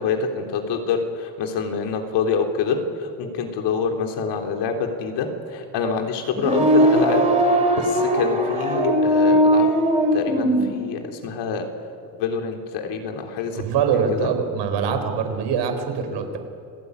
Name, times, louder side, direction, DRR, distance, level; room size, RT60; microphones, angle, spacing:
voice 1, 0.0-9.7 10.1-11.7 12.2-13.6 13.9-14.3, left 6 dB, 85° left, 3 dB, 3.6 m, -26 dB
sound 1, 6.3-10.7, right 1 dB, 15° right, 4.9 m, -19 dB
voice 2, 13.5-16.4, right 6 dB, 85° right, 7 dB, 4.1 m, -23 dB
30.0 x 19.0 x 9.7 m, 2.5 s
cardioid pair, 150°, 41 cm